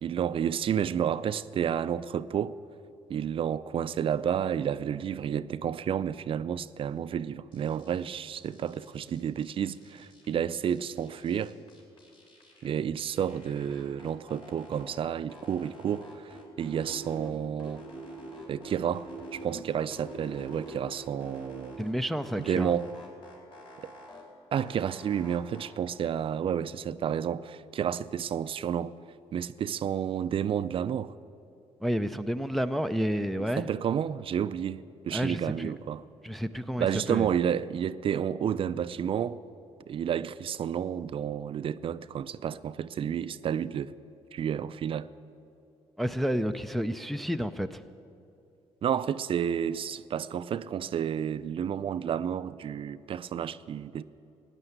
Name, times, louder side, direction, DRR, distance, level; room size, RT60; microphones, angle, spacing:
voice 1, 0.0-2.6 3.1-11.5 12.6-17.8 18.5-21.8 22.5-22.9 23.8-23.9 24.5-28.9 29.3-31.1 33.4-36.0 36.8-39.4 39.9-43.9 44.3-45.1 48.8-54.0, right 8 dB, 55° right, 0.5 m, -31 dB
sound 1, 7.5-8.0 8.4-10.4 10.7-12.7 13.0-15.0 15.3-17.3 17.6-19.6 19.9-21.9 22.2-24.2 24.5-25.7, right 1 dB, 50° left, 4.1 m, -46 dB
voice 2, 21.8-22.8 31.8-33.7 35.1-35.7 36.2-37.3 46.0-47.8, equal, ahead, 0.5 m, -30 dB
16.0 x 9.9 x 8.0 m
cardioid pair, 95°, 11 cm